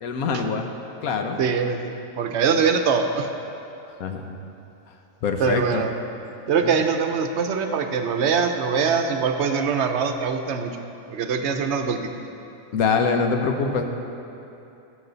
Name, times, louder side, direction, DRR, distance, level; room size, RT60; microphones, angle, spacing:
voice 1, 0.0-0.7 1.0-1.4 4.0-4.4 5.2-5.9 6.6-6.8 12.7-13.8, left 5 dB, 85° left, 5 dB, 1.3 m, -24 dB
voice 2, 1.4-3.3 5.4-5.9 6.5-10.8 11.1-12.1, right 6 dB, 60° right, 6 dB, 0.9 m, -23 dB
17.5 x 6.2 x 3.9 m, 2.8 s
omnidirectional pair, 1.5 m